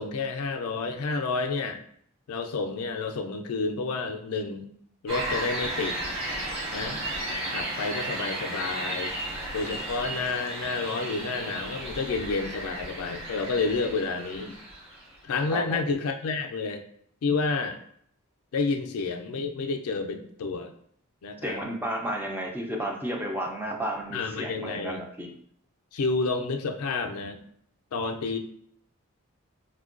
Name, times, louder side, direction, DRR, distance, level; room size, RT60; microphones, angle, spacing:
voice 1, 0.0-1.8 2.3-4.7 5.0-6.0 6.7-7.0 7.3-9.2 9.5-14.6 15.2-16.8 17.2-17.8 18.5-20.7 21.2-21.6 24.1-25.0 25.9-27.4 27.9-28.4, left 4 dB, 75° left, 5 dB, 0.4 m, -30 dB
sound 1, 5.1-15.1, right 1 dB, 25° right, 1.2 m, -34 dB
voice 2, 21.4-25.3, right 1 dB, 10° right, 0 dB, 0.4 m, -32 dB
4.4 x 2.2 x 2.4 m, 0.66 s
head